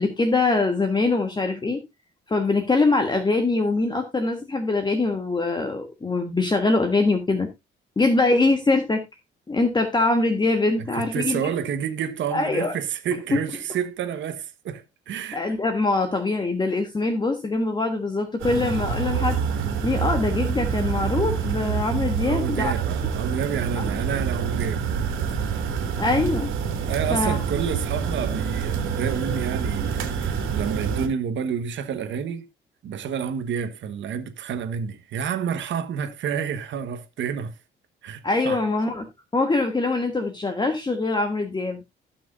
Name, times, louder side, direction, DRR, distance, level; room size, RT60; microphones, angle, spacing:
voice 1, 0.0-1.8 2.3-7.5 8.0-9.0 9.5-11.4 12.3-12.7 13.3-13.4 15.3-19.4 19.8-22.7 23.8-23.9 26.0-26.5 27.1-27.4 38.2-39.1 39.3-41.8, left 3 dB, 20° left, 1.4 m, -23 dB
voice 2, 10.9-15.4 22.2-24.9 25.6-25.7 26.9-32.5 32.8-37.5 38.0-38.6, right 7 dB, 70° right, 1.3 m, -29 dB
sound 1, 18.4-31.1, right 7 dB, 90° right, 2.5 m, -26 dB
16.0 x 6.0 x 2.6 m
cardioid pair, 90°, 20 cm